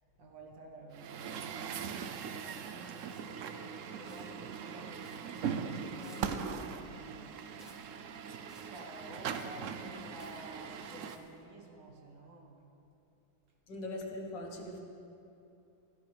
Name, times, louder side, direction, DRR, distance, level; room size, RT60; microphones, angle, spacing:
voice 1, 0.2-12.7, right 1 dB, 85° right, 1 dB, 2.3 m, -52 dB
Truck, 0.9-11.2, right 7 dB, 70° right, 0.7 m, -40 dB
sound 1, 1.9-2.4 2.9-3.5 4.0-4.5 5.0-5.5 6.0-6.4 7.6-8.0 8.5-8.8 9.3-9.7 10.2-10.5 11.0-11.4, equal, ahead, 0.5 m, -60 dB
voice 2, 13.7-14.8, left 1 dB, 75° left, 1 dB, 2.0 m, -41 dB
17.0 x 13.0 x 3.4 m, 2.8 s
omnidirectional pair, 1.9 m